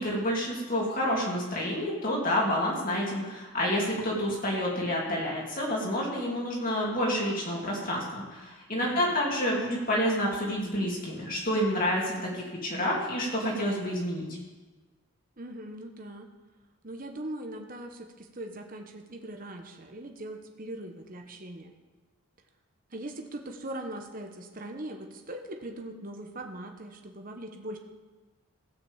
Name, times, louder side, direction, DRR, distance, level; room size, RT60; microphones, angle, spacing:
voice 1, 0.0-14.3, equal, 40° left, -3 dB, 3.1 m, -29 dB
voice 2, 8.7-9.1 15.4-16.3 16.8-21.7 22.9-27.8, right 1 dB, 40° right, 4 dB, 1.1 m, -40 dB
16.0 x 6.2 x 7.2 m, 1.3 s
head